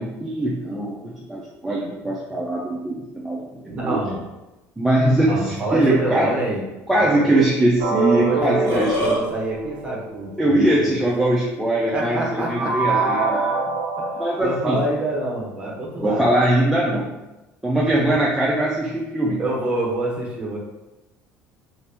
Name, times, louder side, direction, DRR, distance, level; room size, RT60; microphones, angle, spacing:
voice 1, 0.0-3.4 3.8-4.0 4.8-6.3 6.9-9.0 10.4-13.4 14.2-14.8 16.0-17.1 17.6-19.4, right 1 dB, 5° right, -6 dB, 0.4 m, -21 dB
voice 2, 3.7-4.2 5.2-7.4 8.1-10.9 11.9-14.1 14.4-16.3 19.4-20.6, right 1 dB, 20° right, -3 dB, 0.8 m, -27 dB
sound 1, 7.8-10.8 12.5-14.4, right 3 dB, 70° right, 0.5 m, -25 dB
Burping eructation, 8.4-9.2, left 1 dB, 60° left, 1.4 m, -24 dB
2.8 x 2.5 x 3.4 m, 1.0 s
cardioid pair, 155°, 6 cm